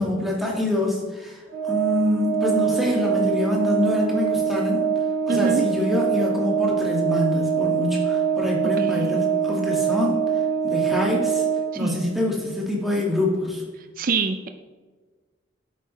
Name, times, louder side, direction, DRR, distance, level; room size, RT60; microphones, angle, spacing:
voice 1, 0.0-1.4 1.7-4.8 5.3-10.2 10.6-11.4 11.7-13.6, left 1 dB, ahead, -3 dB, 1.8 m, -25 dB
Organ, 1.5-12.2, right 7 dB, 75° right, 2.8 m, -24 dB
voice 2, 5.3-5.7 8.8-9.2 11.7-12.0 14.0-14.5, right 4 dB, 45° right, 8 dB, 0.5 m, -25 dB
10.5 x 8.5 x 3.2 m, 1.4 s
head